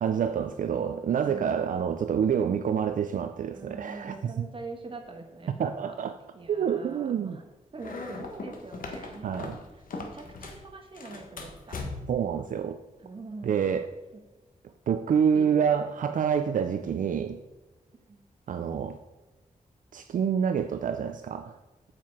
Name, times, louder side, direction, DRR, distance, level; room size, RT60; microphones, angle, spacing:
voice 1, 0.0-4.5 5.6-6.2 6.5-7.4 9.2-9.6 12.1-12.8 13.4-13.9 14.9-17.4 18.5-19.0 19.9-21.6, right 7 dB, 70° right, 9 dB, 0.4 m, -27 dB
voice 2, 1.2-1.7 3.4-5.9 6.3-7.4 7.7-11.9 13.0-13.7 15.3-15.7 18.1-18.2, right 3 dB, 40° right, 3 dB, 1.4 m, -44 dB
sound 1, 7.8-10.6 10.9-12.2, left 3 dB, 85° left, 1.4 m, -39 dB
8.8 x 7.6 x 4.8 m, 1.1 s
wide cardioid pair, 150°, 14 cm